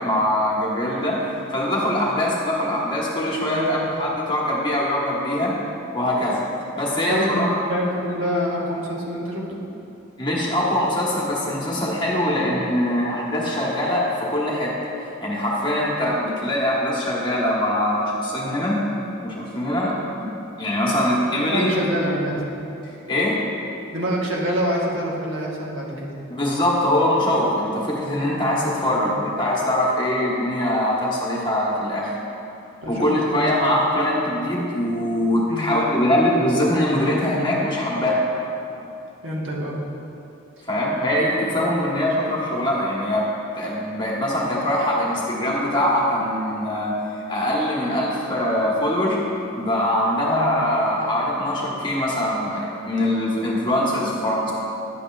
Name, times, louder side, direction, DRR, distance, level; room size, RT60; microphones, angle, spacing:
voice 1, 0.0-5.5 5.9-6.4 6.8-7.6 10.2-18.8 19.2-20.3 20.6-21.7 23.1-23.3 26.3-32.2 32.9-38.2 40.6-43.3 43.5-47.0 47.3-49.2 49.5-54.5, left 1 dB, 25° left, -5 dB, 1.3 m, -22 dB
voice 2, 3.5-3.9 7.0-9.6 21.5-22.4 23.9-26.1 29.0-29.1 32.8-33.7 35.5-35.7 39.2-39.8 50.3-50.5, equal, 75° right, -3 dB, 1.4 m, -26 dB
10.5 x 8.2 x 2.4 m, 2.8 s
head